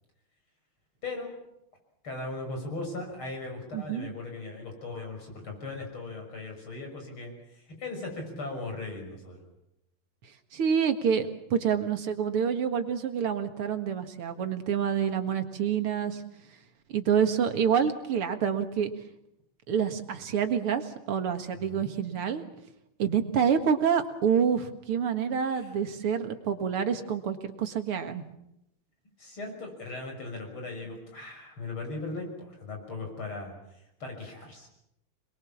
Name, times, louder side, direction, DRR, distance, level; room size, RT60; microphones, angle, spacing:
voice 1, 1.0-1.4 2.0-9.4 21.5-21.9 25.5-25.8 29.2-34.7, left 3 dB, 70° left, 2 dB, 7.0 m, -38 dB
voice 2, 3.7-4.1 10.5-16.2 16.9-18.9 19.7-22.4 23.0-28.2, right 7 dB, 85° right, 7 dB, 2.7 m, -27 dB
27.0 x 21.5 x 7.3 m, 0.82 s
omnidirectional pair, 2.4 m